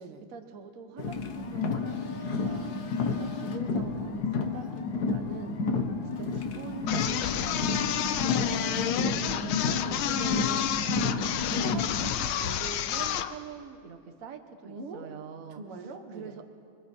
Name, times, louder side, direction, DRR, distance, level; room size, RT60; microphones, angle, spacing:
voice 1, 0.3-5.6 6.2-9.3 9.9-10.7 11.2-15.6 16.1-16.4, right 5 dB, 45° right, 6 dB, 1.4 m, -44 dB
Car, 1.0-12.1, left 4 dB, 50° left, 1.7 m, -31 dB
sound 1, 6.9-13.3, left 10 dB, 75° left, 1.6 m, -30 dB
voice 2, 9.2-9.9 14.6-15.1 15.5-16.4, right 2 dB, 85° right, 5 dB, 2.4 m, -42 dB
25.5 x 24.0 x 4.6 m, 2.3 s
omnidirectional pair, 2.3 m